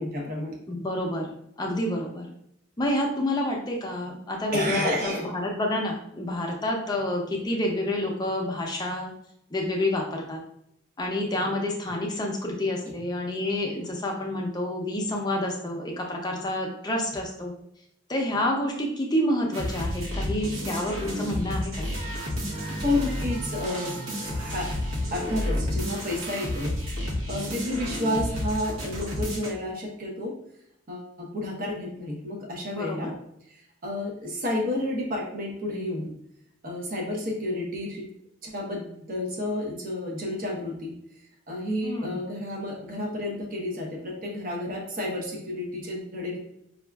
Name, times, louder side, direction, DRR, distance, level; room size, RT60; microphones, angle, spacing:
voice 1, 0.0-0.5 4.5-5.3 22.8-24.0 24.3-24.7 25.1-30.3 30.9-33.1 33.5-36.1 36.6-38.1 38.4-40.9 41.5-46.4, left 1 dB, 45° right, -2 dB, 0.8 m, -31 dB
voice 2, 0.7-2.3 2.8-9.1 9.5-10.4 11.0-17.5 18.1-21.9 32.7-33.1 41.8-42.2, left 1 dB, 20° left, 0 dB, 0.5 m, -28 dB
sound 1, 19.5-29.5, left 1 dB, 90° right, 0.9 m, -31 dB
5.1 x 2.4 x 2.2 m, 0.77 s
head